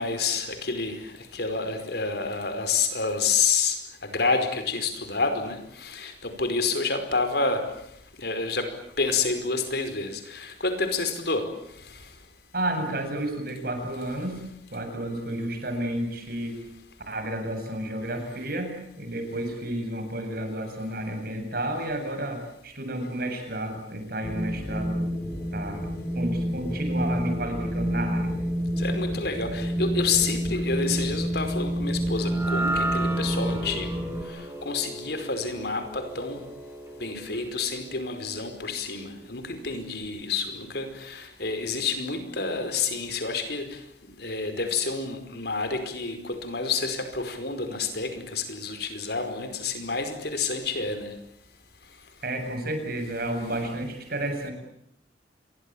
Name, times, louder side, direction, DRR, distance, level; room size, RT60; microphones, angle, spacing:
voice 1, 0.0-7.7 8.2-8.7 9.0-11.5 28.8-33.9 34.3-36.4 37.0-43.8 44.2-51.1, left 4 dB, 60° left, 9 dB, 5.0 m, -29 dB
voice 2, 12.5-14.4 14.7-16.6 17.1-25.0 25.5-25.8 26.1-28.3 52.2-54.5, right 1 dB, 55° right, 6 dB, 7.5 m, -31 dB
Wind, 24.2-34.2, equal, 10° left, 3.2 m, -28 dB
sound 1, 32.2-38.6, right 1 dB, 15° right, 4.4 m, -35 dB
28.0 x 23.5 x 8.9 m, 0.73 s
head